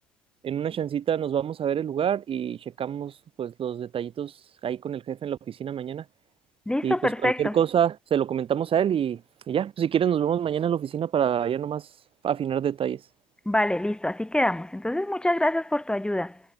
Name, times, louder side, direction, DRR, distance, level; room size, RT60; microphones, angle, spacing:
voice 1, 0.4-3.1 3.4-4.3 4.6-6.0 6.8-6.9 7.2-9.2 9.5-11.9 12.2-13.0, right 9 dB, 35° right, 1.2 m, -26 dB
voice 2, 6.7-7.6 13.5-16.4, left 1 dB, 5° left, 1.7 m, -25 dB
supercardioid pair, 100°, 15 cm